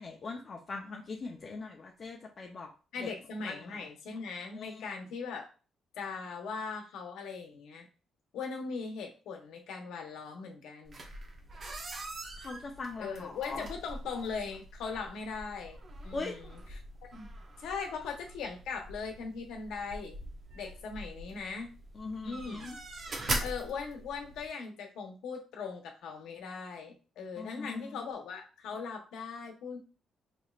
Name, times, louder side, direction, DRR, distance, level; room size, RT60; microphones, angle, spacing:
voice 1, 0.0-2.7 3.0-3.1 3.4-3.8 4.5-4.8 12.4-13.7 16.1-16.4 21.9-22.8 27.4-28.0, left 3 dB, 40° left, 1 dB, 0.6 m, -41 dB
voice 2, 2.9-5.5 5.9-7.8 8.3-11.0 13.0-16.8 17.1-17.3 17.6-20.2 20.5-21.7 22.2-22.7 23.4-29.8, left 5 dB, 80° left, 3 dB, 1.0 m, -39 dB
sound 1, 10.8-24.5, right 2 dB, 40° right, 0.8 m, -42 dB
4.2 x 3.2 x 2.4 m, 0.34 s
cardioid pair, 90°, 0 cm